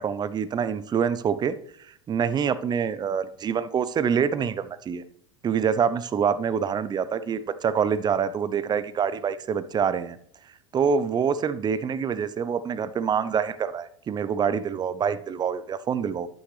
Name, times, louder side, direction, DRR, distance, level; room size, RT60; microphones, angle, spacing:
voice 1, 0.0-1.6 2.1-5.0 5.4-10.2 10.7-16.3, right 7 dB, 25° right, 14 dB, 0.7 m, -26 dB
11.0 x 9.0 x 3.3 m, 0.66 s
hypercardioid pair, 85°, 15 cm